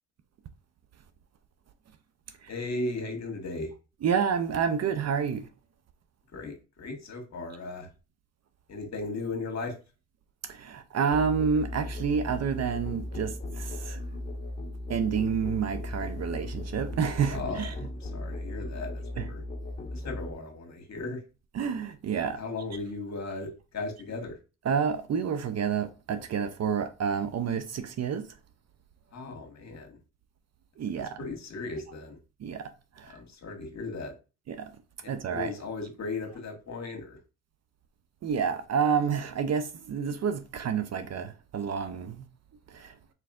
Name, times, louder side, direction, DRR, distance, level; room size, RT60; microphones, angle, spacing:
voice 1, 2.5-3.7 6.3-7.9 8.7-9.7 17.3-19.4 19.9-21.2 22.3-24.4 29.1-30.0 30.9-32.2 33.1-34.1 35.0-37.2, left 3 dB, 45° left, 1.6 m, -37 dB
voice 2, 4.0-5.5 10.5-14.1 14.9-17.7 19.2-19.3 21.5-22.4 24.7-28.3 30.8-31.2 32.4-32.7 33.0-33.1 34.5-34.7 35.1-35.5 38.2-42.3 42.7-43.0, right 6 dB, 45° right, 0.6 m, -29 dB
Musical instrument, 11.1-20.3, left 1 dB, 20° left, 1.7 m, -37 dB
4.1 x 4.1 x 2.4 m
supercardioid pair, 65°, 37 cm